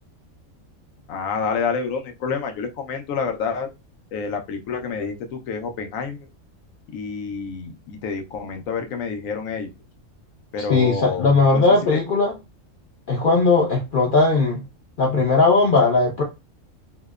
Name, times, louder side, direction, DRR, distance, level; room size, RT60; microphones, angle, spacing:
voice 1, 1.1-3.7 4.1-6.3 6.9-9.7 10.5-12.0, left 5 dB, 90° left, 5 dB, 1.0 m, -28 dB
voice 2, 10.7-12.3 13.1-14.6 15.0-16.2, left 3 dB, 60° left, -1 dB, 0.5 m, -18 dB
2.8 x 2.0 x 2.2 m, 0.25 s
omnidirectional pair, 1.4 m